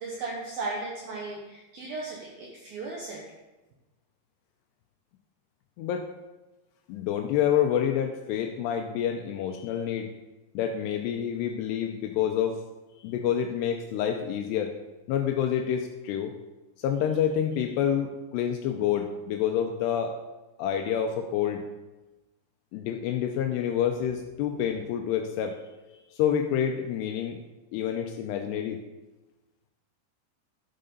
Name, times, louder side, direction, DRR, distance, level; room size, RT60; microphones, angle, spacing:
voice 1, 0.0-3.2, right 3 dB, 65° right, -2 dB, 2.6 m, -36 dB
voice 2, 5.8-6.1 6.9-10.1 10.5-12.6 13.0-14.8 15.1-16.3 16.8-20.1 20.6-21.7 22.7-25.6 25.9-27.4 27.7-28.8, left 9 dB, 85° left, 5 dB, 2.5 m, -28 dB
12.0 x 7.7 x 5.4 m, 1.1 s
omnidirectional pair, 5.4 m